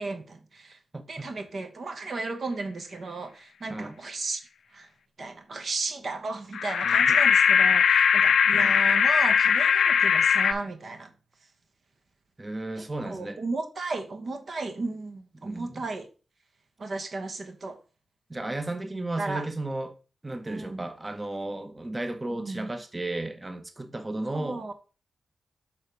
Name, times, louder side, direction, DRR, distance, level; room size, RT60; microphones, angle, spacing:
voice 1, 0.0-0.8 1.1-4.4 4.7-4.9 5.2-11.1 13.1-16.1 16.8-17.8 19.2-19.4 20.5-20.8 22.4-22.7 24.3-24.7, right 3 dB, 60° right, 1.0 m, -34 dB
voice 2, 0.9-1.3 3.7-4.0 6.8-7.2 8.5-8.8 12.4-13.4 15.3-15.9 18.3-24.7, right 2 dB, 25° right, 0.9 m, -34 dB
sound 1, 6.5-10.5, left 7 dB, 80° left, 0.4 m, -20 dB
6.4 x 3.5 x 5.2 m
supercardioid pair, 40°, 0 cm